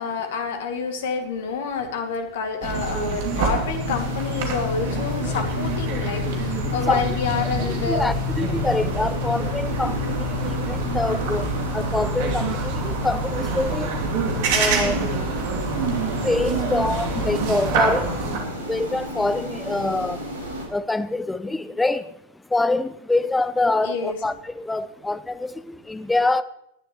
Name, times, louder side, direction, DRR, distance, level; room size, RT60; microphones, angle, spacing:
voice 1, 0.0-8.1 23.8-24.2, left 5 dB, 55° left, 2.3 m, -28 dB
sound 1, 2.6-18.4, right 2 dB, 50° right, 2.6 m, -26 dB
sound 2, 3.8-20.7, equal, 70° right, 4.4 m, -34 dB
voice 2, 7.6-14.2 14.4-15.3 15.6-20.3 20.6-26.4, left 2 dB, 10° left, 0.7 m, -26 dB
19.5 x 11.0 x 3.1 m
figure-of-eight pair, 90°, 0 cm